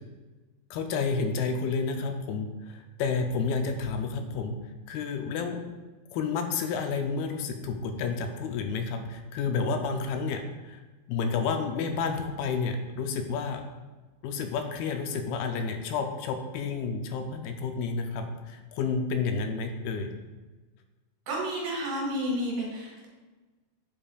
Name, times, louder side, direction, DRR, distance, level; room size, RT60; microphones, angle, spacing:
voice 1, 0.7-4.5 4.9-5.6 6.1-10.8 11.1-13.6 14.2-20.1, left 5 dB, 80° left, 5 dB, 2.5 m, -30 dB
voice 2, 21.3-23.1, equal, 70° right, -3 dB, 3.7 m, -31 dB
8.5 x 7.4 x 2.4 m, 1.3 s
omnidirectional pair, 4.4 m